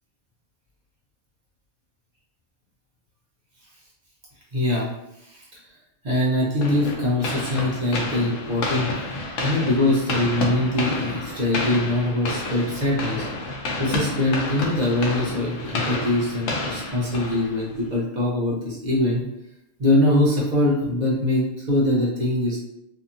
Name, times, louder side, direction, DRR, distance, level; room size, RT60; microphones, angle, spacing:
voice 1, 4.5-4.9 5.2-5.6 6.0-8.9 9.4-13.3 13.8-19.2 19.8-22.6, left 1 dB, 45° right, -5 dB, 0.7 m, -23 dB
sound 1, 6.6-17.9, left 2 dB, 80° left, 1.0 m, -30 dB
2.7 x 2.7 x 2.5 m, 0.83 s
omnidirectional pair, 1.3 m